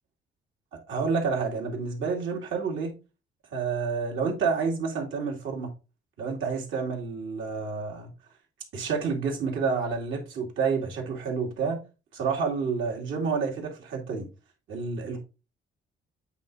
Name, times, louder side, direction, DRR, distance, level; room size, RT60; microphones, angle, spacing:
voice 1, 0.9-2.9 3.5-5.7 6.2-8.1 8.7-11.8 12.1-14.3 14.7-15.2, right 5 dB, 80° right, 2.4 m, -29 dB
8.1 x 3.6 x 3.9 m
cardioid pair, 90°, 20 cm